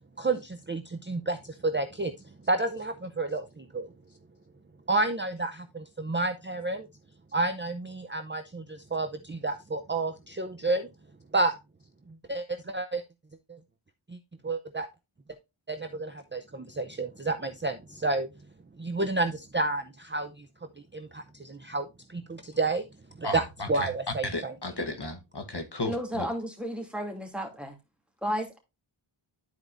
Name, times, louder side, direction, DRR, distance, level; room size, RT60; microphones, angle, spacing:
voice 1, 0.2-2.1 2.5-3.9 4.9-6.9 7.3-10.9 11.3-11.6 12.3-13.0 13.5-13.6 14.1-14.2 14.4-14.9 15.7-18.3 18.8-20.5 20.9-22.8 23.2-24.5, right 2 dB, 25° right, 0.6 m, -30 dB
voice 2, 23.2-23.9 24.2-26.3, left 2 dB, 50° left, 1.2 m, -34 dB
voice 3, 25.8-27.8 28.2-28.6, equal, ahead, 2.5 m, -33 dB
12.5 x 4.7 x 2.5 m
wide cardioid pair, 40°, 50 cm